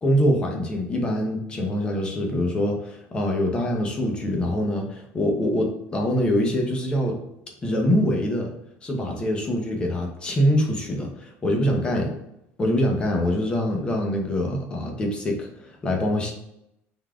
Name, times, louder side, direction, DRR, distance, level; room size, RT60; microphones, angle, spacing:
voice 1, 0.0-7.2 7.6-8.5 8.8-12.1 12.6-16.3, equal, 20° left, 1 dB, 0.8 m, -24 dB
5.5 x 3.6 x 2.3 m, 0.81 s
cardioid pair, 170°, 5 cm